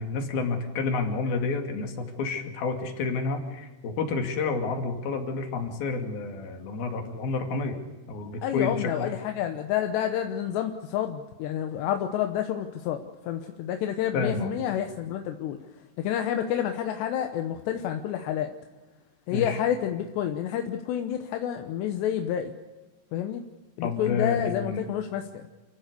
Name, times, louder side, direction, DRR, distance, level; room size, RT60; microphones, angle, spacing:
voice 1, 0.0-7.8 8.1-9.2 14.1-14.5 19.3-19.6 23.8-24.8, left 4 dB, 65° left, 4 dB, 4.1 m, -30 dB
voice 2, 8.4-15.6 16.0-18.5 19.3-22.5 23.1-23.4 23.8-25.5, left 10 dB, 80° left, 6 dB, 3.2 m, -29 dB
28.5 x 15.5 x 6.8 m, 1.2 s
omnidirectional pair, 4.9 m